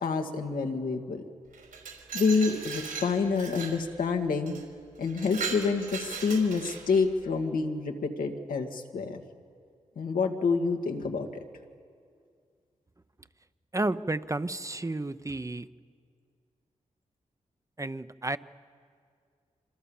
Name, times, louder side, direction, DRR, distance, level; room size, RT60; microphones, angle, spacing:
voice 1, 0.0-1.2 2.1-4.6 5.0-9.2 10.0-11.3, left 4 dB, 80° left, 3 dB, 2.1 m, -28 dB
Glass, 1.5-3.8 4.5-4.6 5.0-7.0, right 5 dB, 80° right, 5.4 m, -38 dB
voice 2, 13.7-15.7 17.8-18.4, right 2 dB, 20° right, 12 dB, 0.9 m, -31 dB
26.0 x 25.5 x 7.3 m, 2.2 s
cardioid pair, 50°, 14 cm